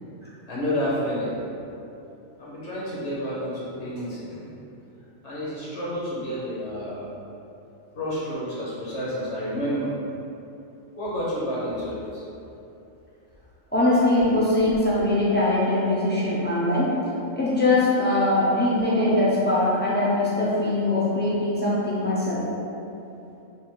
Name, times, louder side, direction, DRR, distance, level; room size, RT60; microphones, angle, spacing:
voice 1, 0.5-1.4 2.4-4.5 5.2-7.1 7.9-9.9 11.0-12.2, equal, 65° left, -7 dB, 1.1 m, -30 dB
voice 2, 13.7-17.0 17.3-22.5, left 2 dB, 15° left, -9 dB, 0.4 m, -22 dB
3.4 x 2.4 x 4.4 m, 2.8 s
omnidirectional pair, 1.4 m